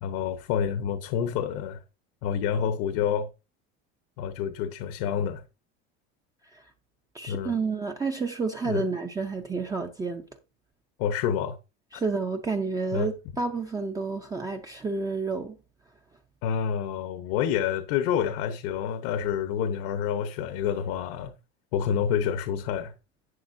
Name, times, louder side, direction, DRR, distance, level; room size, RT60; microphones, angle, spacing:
voice 1, 0.0-1.8 2.2-3.3 4.2-5.4 7.3-7.6 8.6-8.8 11.0-11.6 11.9-12.0 12.9-13.1 16.4-21.3 21.7-22.9, left 8 dB, 75° left, 1.1 m, -28 dB
voice 2, 7.1-10.2 11.9-15.6, right 4 dB, 10° right, 0.6 m, -30 dB
11.5 x 8.3 x 2.7 m
cardioid pair, 150°, 30 cm